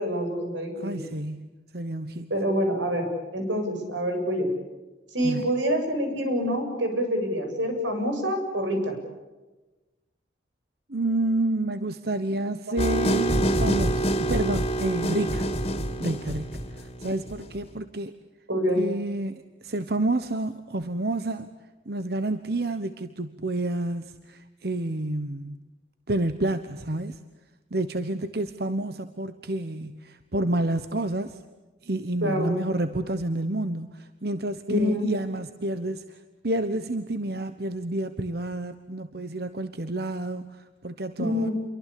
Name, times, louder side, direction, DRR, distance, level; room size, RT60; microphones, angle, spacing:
voice 1, 0.0-1.1 2.3-3.1 3.3-4.5 5.1-9.0 18.5-18.8 32.2-32.5 34.7-35.1 41.2-41.5, equal, 90° right, 5 dB, 7.8 m, -26 dB
voice 2, 0.8-2.3 5.2-5.5 10.9-15.5 16.0-18.2 18.8-21.5 21.9-25.6 26.1-27.2 27.7-31.4 31.8-41.5, right 2 dB, 55° right, 10 dB, 1.1 m, -29 dB
sound 1, 12.8-17.5, right 1 dB, 30° left, 2.9 m, -26 dB
29.0 x 23.5 x 8.6 m, 1.1 s
head